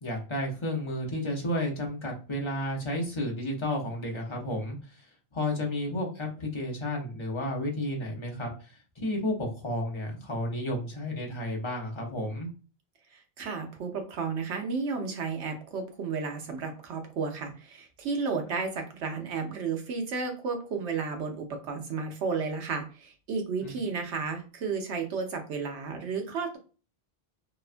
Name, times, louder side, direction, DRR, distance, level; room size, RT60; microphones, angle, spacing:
voice 1, 0.0-5.1 5.3-12.5 23.6-23.7, left 1 dB, 35° left, -1 dB, 0.6 m, -32 dB
voice 2, 13.1-26.6, right 5 dB, 90° right, 4 dB, 1.0 m, -33 dB
2.8 x 2.2 x 2.4 m, 0.36 s
omnidirectional pair, 1.1 m